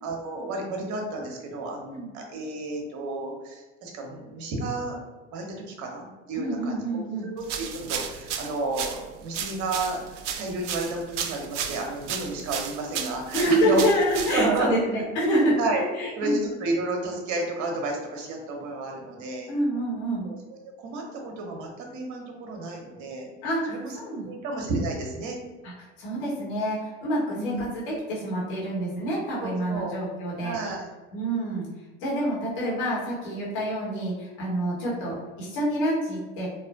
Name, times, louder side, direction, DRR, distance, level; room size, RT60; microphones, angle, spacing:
voice 1, 0.0-5.0 5.3-10.0 10.4-13.8 14.3-14.7 15.6-15.8 16.2-19.5 20.2-23.3 23.7-23.9 24.2-25.4 27.4-27.6 29.4-30.0 30.4-30.9, right 2 dB, 50° right, 1 dB, 1.0 m, -32 dB
voice 2, 6.3-7.3 13.3-15.6 15.9-16.4 19.5-20.3 23.4-24.3 25.6-30.6 31.1-31.7 32.0-36.5, right 1 dB, 65° left, -6 dB, 1.4 m, -27 dB
sound 1, 7.4-14.7, right 8 dB, 75° right, 0.5 m, -34 dB
4.1 x 2.6 x 2.5 m, 1.2 s
figure-of-eight pair, 65°, 37 cm